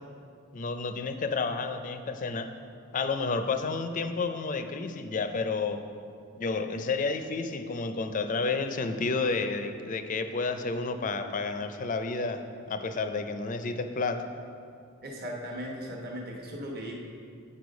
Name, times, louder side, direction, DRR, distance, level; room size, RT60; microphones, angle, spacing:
voice 1, 0.5-2.5 2.9-5.8 6.4-12.4 12.7-14.2, left 4 dB, 35° left, 8 dB, 0.4 m, -30 dB
voice 2, 15.0-16.9, equal, 45° right, -1 dB, 1.0 m, -37 dB
8.5 x 4.7 x 5.1 m, 2.4 s
head